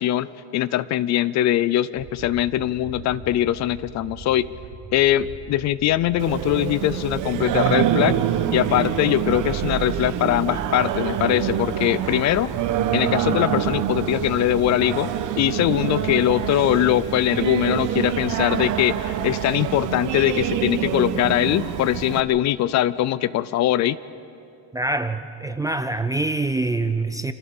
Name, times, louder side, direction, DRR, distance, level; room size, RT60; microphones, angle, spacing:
voice 1, 0.0-4.5 4.9-8.2 8.5-12.5 12.9-24.0, left 13 dB, 45° left, 18 dB, 0.5 m, -22 dB
sound 1, 1.9-20.9, right 6 dB, 65° right, 4.7 m, -41 dB
Singing, 6.2-22.2, right 10 dB, 50° right, 1.2 m, -26 dB
voice 2, 24.7-27.3, right 2 dB, 10° right, 9 dB, 0.4 m, -25 dB
27.0 x 15.0 x 7.2 m, 2.6 s
cardioid pair, 140°, 40 cm